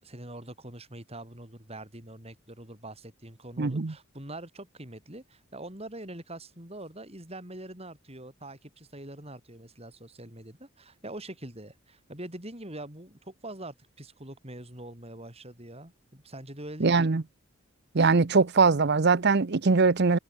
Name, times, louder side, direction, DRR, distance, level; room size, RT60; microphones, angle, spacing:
voice 1, 0.0-17.1, right 1 dB, 30° right, 7.0 m, -44 dB
voice 2, 3.6-3.9 16.8-17.2 17.9-20.2, right 4 dB, 55° right, 0.7 m, -22 dB
head